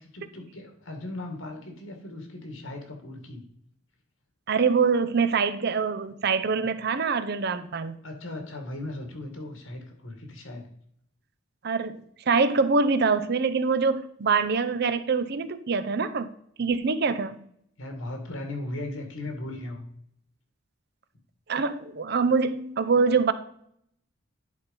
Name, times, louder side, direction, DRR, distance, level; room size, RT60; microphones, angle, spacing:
voice 1, 0.0-3.5 8.0-10.6 17.8-19.8, left 2 dB, 85° left, 3 dB, 2.1 m, -37 dB
voice 2, 4.5-8.0 11.6-16.3 16.6-17.4 21.5-23.3, right 5 dB, 55° right, 12 dB, 0.6 m, -24 dB
10.5 x 4.3 x 5.4 m, 0.68 s
head